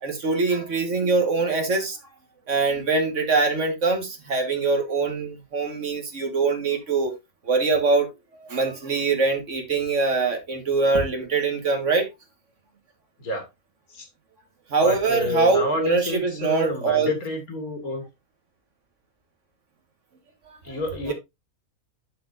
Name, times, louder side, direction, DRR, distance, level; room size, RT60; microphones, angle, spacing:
voice 1, 0.0-2.0 2.5-7.1 7.5-8.1 8.3-12.1 14.7-17.1 20.7-20.8 21.1-21.2, right 3 dB, 55° right, 1.7 m, -23 dB
voice 2, 14.8-18.0 20.6-21.1, left 1 dB, 70° left, 2.2 m, -29 dB
12.0 x 4.3 x 2.5 m
omnidirectional pair, 1.6 m